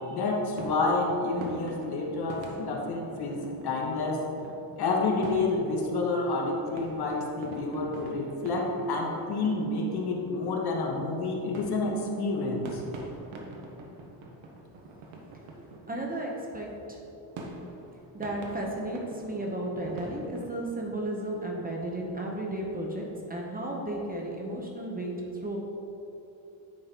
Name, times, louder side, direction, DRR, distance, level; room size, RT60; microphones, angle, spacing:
voice 1, 0.1-4.3 4.8-12.8, left 3 dB, 50° left, 0 dB, 1.1 m, -29 dB
sound 1, 0.6-20.5, right 2 dB, 75° right, 1.1 m, -45 dB
voice 2, 15.6-17.0 18.1-25.6, right 1 dB, 20° right, -1 dB, 0.7 m, -34 dB
9.6 x 3.7 x 4.4 m, 3.0 s
cardioid pair, 140°, 47 cm